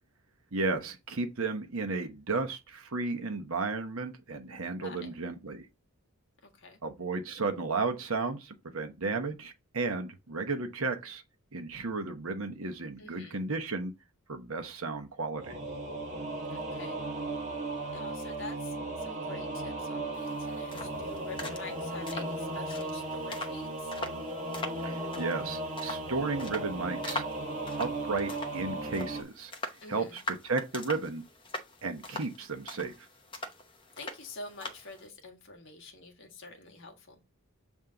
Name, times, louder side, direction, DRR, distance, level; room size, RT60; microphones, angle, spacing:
voice 1, 0.5-5.7 6.8-11.2 11.5-13.9 14.3-15.6 24.8-27.2 27.8-29.5 29.9-31.2 31.8-33.1, right 3 dB, 70° right, 1.0 m, -34 dB
voice 2, 13.0-13.4 16.5-17.0 17.9-23.9 29.8-30.2 34.0-37.2, left 3 dB, 55° left, 1.7 m, -47 dB
Singing / Musical instrument, 15.4-29.2, right 2 dB, 35° right, 1.4 m, -36 dB
sound 1, 20.1-35.1, left 2 dB, 20° left, 0.8 m, -43 dB
7.4 x 3.6 x 3.8 m
head